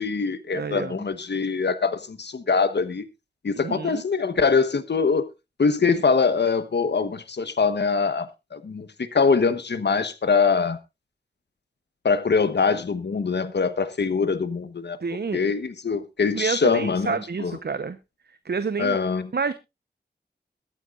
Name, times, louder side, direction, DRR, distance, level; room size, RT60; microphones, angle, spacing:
voice 1, 0.0-3.0 3.4-5.3 5.6-10.8 12.0-15.0 15.3-17.6 18.8-19.3, left 5 dB, 75° left, 1.1 m, -23 dB
voice 2, 0.5-1.0 3.6-4.0 15.0-15.4 16.3-18.0 18.4-19.0 19.3-19.5, right 5 dB, 70° right, 0.9 m, -28 dB
22.5 x 9.2 x 2.5 m
wide cardioid pair, 70°, 18 cm